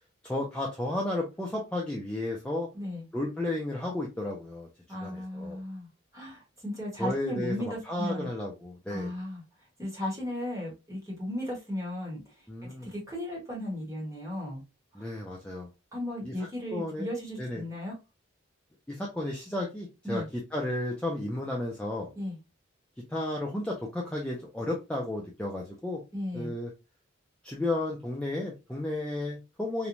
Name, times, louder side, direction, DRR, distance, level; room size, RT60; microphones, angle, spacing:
voice 1, 0.2-2.7 3.1-4.7 5.0-5.6 7.0-9.1 12.5-12.9 15.0-15.7 16.2-16.3 16.7-17.1 17.4-17.6 18.9-22.1 23.1-26.0 26.3-26.7 27.4-29.9, left 1 dB, 5° left, 0.3 m, -33 dB
voice 2, 2.7-3.1 4.9-8.3 8.9-14.6 14.9-15.1 15.9-18.0 20.0-20.3 22.1-22.4 26.1-26.6, left 1 dB, 15° right, 1.0 m, -36 dB
2.9 x 2.1 x 2.5 m
head